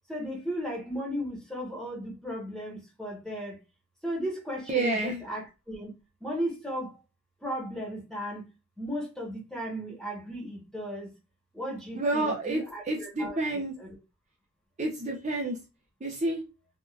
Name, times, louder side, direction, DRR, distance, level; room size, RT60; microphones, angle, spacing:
voice 1, 0.1-3.6 4.0-5.9 6.2-7.0 7.4-8.5 8.8-11.1 11.5-13.9, equal, ahead, 1.1 m, -35 dB
voice 2, 4.7-5.2 12.0-13.7 14.8-15.6 16.0-16.4, right 2 dB, 35° right, 0.5 m, -29 dB
3.5 x 2.5 x 2.3 m
head